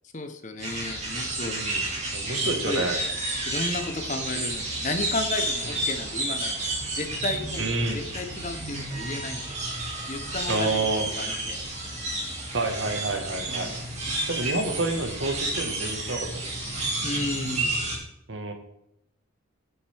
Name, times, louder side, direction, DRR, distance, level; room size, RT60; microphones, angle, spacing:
voice 1, 0.1-1.6 2.7-2.8 3.5-6.6 6.9-7.6 7.9-9.6 10.1-11.6 13.5-13.8 17.0-17.7, left 2 dB, 35° left, 7 dB, 0.9 m, -33 dB
sound 1, 0.6-18.0, right 2 dB, 35° right, 2.8 m, -31 dB
voice 2, 1.4-3.0 5.6-5.7 7.6-8.0 10.5-11.1 12.5-13.7 14.3-16.7 18.3-18.5, right 2 dB, 65° right, 5 dB, 1.5 m, -29 dB
10.0 x 8.6 x 3.5 m, 0.82 s
head